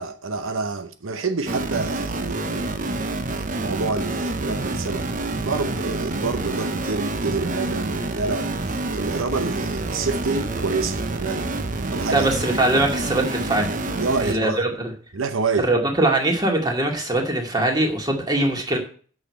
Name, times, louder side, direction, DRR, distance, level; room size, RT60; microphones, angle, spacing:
voice 1, 0.0-3.0 3.6-5.1 5.4-8.5 8.9-11.5 11.9-12.3 13.9-14.6 15.1-15.7, right 4 dB, 75° right, 0.8 m, -27 dB
sound 1, 1.5-14.3, right 2 dB, 40° right, 0.9 m, -27 dB
voice 2, 12.1-13.7 14.2-14.7 15.6-18.8, right 2 dB, 20° right, 2.3 m, -21 dB
8.6 x 6.5 x 8.5 m
head